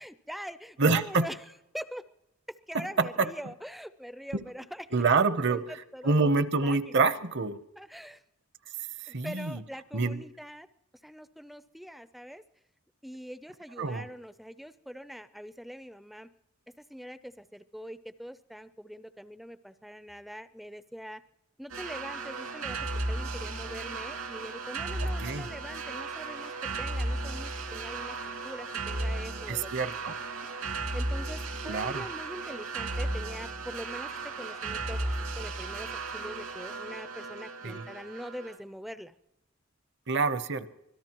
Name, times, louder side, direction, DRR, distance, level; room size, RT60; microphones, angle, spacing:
voice 1, 0.0-1.4 1.7-2.1 2.7-5.0 5.3-7.2 7.8-8.2 9.1-10.7 11.0-12.4 13.0-16.3 16.8-21.2 21.6-22.8 23.1-26.5 26.8-28.2 28.4-29.7 30.0-30.1 30.9-39.1, equal, ahead, 12 dB, 0.4 m, -43 dB
voice 2, 0.8-1.3 2.7-3.3 4.3-4.4 4.9-5.6 6.0-7.6 9.1-9.6 9.9-10.2 13.8-14.1 25.0-25.5 29.5-30.1 31.6-32.0 37.6-37.8 40.1-40.7, right 4 dB, 55° right, 12 dB, 0.8 m, -27 dB
sound 1, 21.7-38.6, right 2 dB, 80° right, 2.4 m, -35 dB
24.5 x 17.5 x 3.0 m, 0.87 s
head